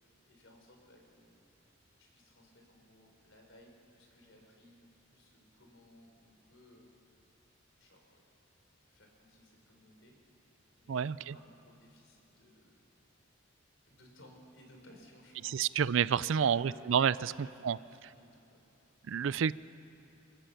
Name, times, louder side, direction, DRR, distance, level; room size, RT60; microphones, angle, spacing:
voice 1, 0.2-1.4 2.0-4.8 5.1-6.9 7.8-8.2 8.9-10.5 10.8-12.8 13.8-15.7 16.1-18.6 19.0-19.2, equal, 70° left, 2 dB, 4.1 m, -59 dB
voice 2, 10.9-11.4 15.4-17.3 17.6-17.8 19.0-19.5, right 7 dB, 70° right, 19 dB, 0.4 m, -29 dB
29.0 x 14.5 x 6.9 m, 2.8 s
head